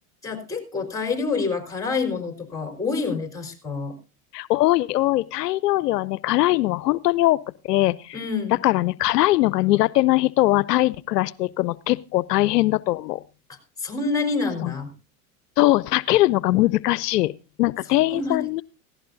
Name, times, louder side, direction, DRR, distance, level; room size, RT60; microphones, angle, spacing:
voice 1, 0.2-4.0 8.1-8.6 13.5-14.9 18.1-18.4, left 4 dB, 5° left, 4 dB, 3.9 m, -27 dB
voice 2, 4.3-7.4 7.6-8.2 8.6-13.2 14.6-14.7 15.6-17.3 17.6-18.6, left 17 dB, 90° left, 21 dB, 0.6 m, -21 dB
17.0 x 15.5 x 2.6 m, 0.30 s
hypercardioid pair, 105°, 46 cm